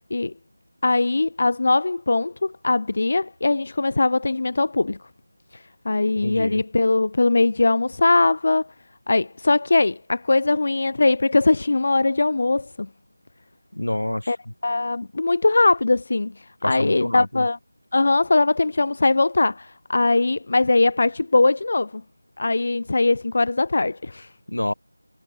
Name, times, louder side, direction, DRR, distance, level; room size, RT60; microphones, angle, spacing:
voice 1, 0.8-5.0 5.8-8.7 9.1-12.9 14.3-14.4 14.6-16.3 16.6-17.6 17.9-22.0 22.4-24.3, left 3 dB, 40° left, 0.8 m, -20 dB
voice 2, 6.2-6.6 13.7-14.5 16.6-17.4 24.5-24.7, left 1 dB, 80° left, 2.2 m, -27 dB
figure-of-eight pair, 170°, 0 cm